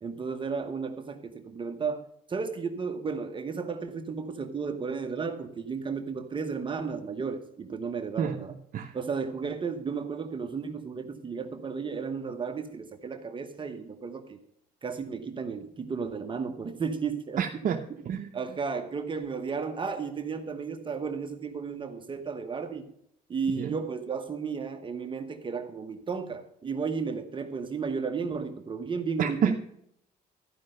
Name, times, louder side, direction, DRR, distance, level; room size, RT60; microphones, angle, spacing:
voice 1, 0.0-8.5 8.9-14.4 14.8-17.4 18.3-22.9 23.3-29.5, right 5 dB, 30° right, 6 dB, 1.0 m, -33 dB
voice 2, 17.4-18.3 23.5-23.8 29.2-29.6, right 7 dB, 55° right, 3 dB, 0.8 m, -29 dB
13.0 x 5.4 x 6.5 m, 0.72 s
cardioid pair, 110°, 17 cm